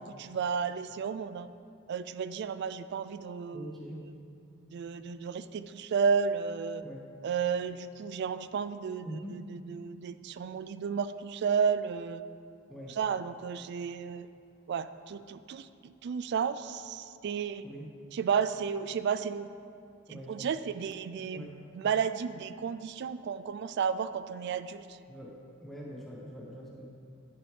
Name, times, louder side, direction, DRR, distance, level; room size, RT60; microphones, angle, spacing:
voice 1, 0.0-1.5 1.9-3.8 4.7-6.8 7.2-9.2 9.7-12.2 13.0-14.3 14.7-17.7 18.1-19.5 20.1-21.5 21.7-25.0, right 6 dB, 55° right, 13 dB, 0.3 m, -32 dB
voice 2, 3.5-4.0 6.8-7.0 9.0-9.4 12.7-13.0 17.6-17.9 20.1-20.5 21.3-21.5 25.1-25.3 25.6-26.9, equal, ahead, -4 dB, 0.9 m, -43 dB
10.5 x 6.8 x 3.2 m, 2.5 s
head